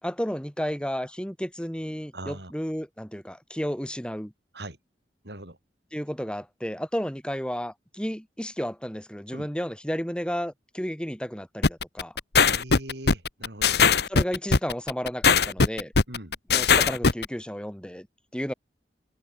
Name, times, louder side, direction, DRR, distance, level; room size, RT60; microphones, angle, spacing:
voice 1, 0.0-4.3 5.9-12.1 14.1-15.9 16.5-18.1 18.3-18.5, equal, 5° left, 3.5 m, -32 dB
voice 2, 2.1-2.5 4.5-4.8 5.2-5.6 9.3-9.5 12.5-13.8 16.1-16.3, right 1 dB, 75° right, 6.6 m, -40 dB
sound 1, 11.6-17.3, left 5 dB, 70° left, 1.1 m, -20 dB
head